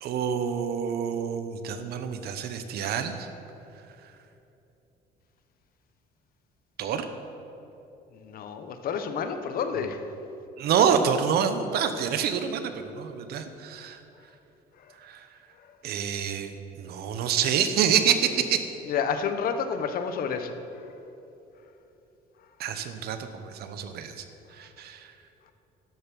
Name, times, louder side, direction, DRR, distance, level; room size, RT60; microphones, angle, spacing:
voice 1, 0.0-3.3 6.8-7.1 10.6-14.0 15.0-15.3 15.8-18.7 22.6-24.2 24.6-25.1, right 7 dB, 70° right, 9 dB, 0.9 m, -27 dB
voice 2, 8.1-10.0 14.8-14.9 15.6-15.7 17.2-17.3 18.8-20.9, left 6 dB, 60° left, 8 dB, 0.9 m, -30 dB
12.5 x 6.8 x 6.2 m, 2.9 s
cardioid pair, 110°, 17 cm